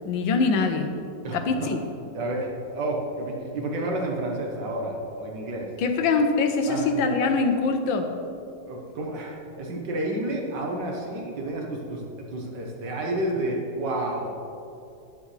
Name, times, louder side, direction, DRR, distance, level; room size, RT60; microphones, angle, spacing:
voice 1, 0.0-0.9 1.3-1.8 5.8-8.1, left 4 dB, 90° left, 6 dB, 1.6 m, -23 dB
voice 2, 1.2-1.7 2.1-5.7 6.7-7.0 8.6-14.3, right 1 dB, 70° right, 0 dB, 1.7 m, -30 dB
10.0 x 9.5 x 3.2 m, 2.6 s
omnidirectional pair, 2.0 m